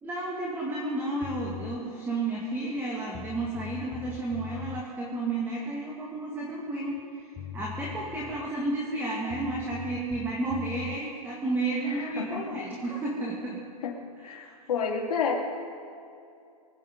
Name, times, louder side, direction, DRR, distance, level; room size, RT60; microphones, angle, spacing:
voice 1, 0.0-13.6 14.2-14.5, right 2 dB, 10° right, -3 dB, 2.0 m, -32 dB
sound 1, 1.2-1.8 2.8-2.9 3.1-4.8 7.0-7.1 7.4-8.6 9.3-11.0, left 10 dB, 15° left, 0.3 m, -41 dB
voice 2, 11.8-12.6 13.8-15.4, left 6 dB, 75° left, 0 dB, 3.0 m, -31 dB
24.0 x 8.9 x 5.3 m, 2.5 s
hypercardioid pair, 145°, 20 cm